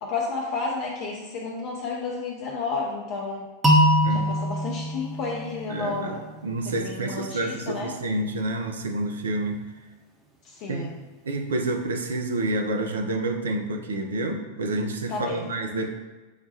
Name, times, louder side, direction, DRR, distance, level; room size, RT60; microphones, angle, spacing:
voice 1, 0.0-3.4 4.1-6.3 6.6-7.9 10.4-10.9 15.1-15.5, left 4 dB, 40° left, -2 dB, 0.6 m, -31 dB
sound 1, 3.6-6.5, equal, 15° right, 0.7 m, -23 dB
voice 2, 5.7-6.2 6.4-9.6 10.7-10.9 11.2-15.9, right 2 dB, 65° right, 4 dB, 0.5 m, -28 dB
6.5 x 2.3 x 2.7 m, 1.2 s
figure-of-eight pair, 90°, 0 cm